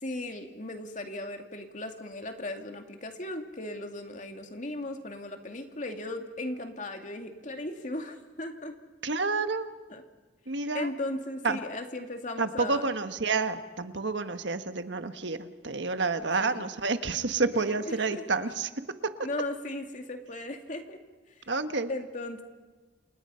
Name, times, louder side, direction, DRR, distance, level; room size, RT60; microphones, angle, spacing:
voice 1, 0.0-8.7 9.9-10.0 10.7-12.9 16.4-16.7 17.9-18.2 19.2-21.0 21.9-22.4, left 1 dB, 45° left, 5 dB, 2.4 m, -37 dB
voice 2, 9.0-9.7 10.5-10.9 11.4-11.6 12.4-18.7 21.5-21.9, right 4 dB, 85° right, 9 dB, 1.4 m, -29 dB
29.0 x 28.0 x 5.7 m, 1.3 s
head